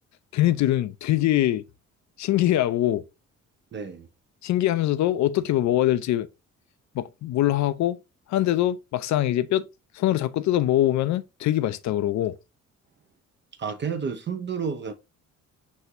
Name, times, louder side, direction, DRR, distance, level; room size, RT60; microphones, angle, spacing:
voice 1, 0.3-1.6 2.2-3.0 4.4-6.3 6.9-8.0 8.3-9.7 9.9-12.4, left 13 dB, 65° left, 0.5 m, -23 dB
voice 2, 3.7-4.1 13.6-14.9, right 6 dB, 40° right, 0.5 m, -30 dB
6.1 x 2.7 x 2.5 m
cardioid pair, 90°, 30 cm